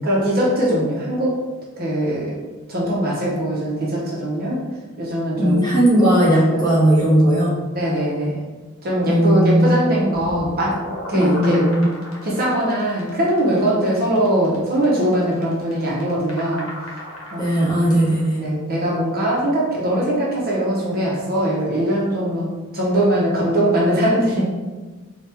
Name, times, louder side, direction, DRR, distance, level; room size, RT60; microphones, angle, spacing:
voice 1, 0.0-1.4 1.8-2.4 2.7-4.6 5.0-5.7 7.7-8.4 8.8-10.8 11.1-11.7 12.2-17.0 17.3-17.5 18.4-24.5, right 1 dB, 45° right, -4 dB, 0.8 m, -21 dB
voice 2, 5.4-7.5 9.0-9.7 11.1-11.9 17.4-18.4, right 1 dB, 20° left, -8 dB, 1.2 m, -17 dB
sound 1, 10.2-18.3, left 1 dB, 65° left, 1.0 m, -36 dB
4.3 x 2.4 x 3.4 m, 1.3 s
head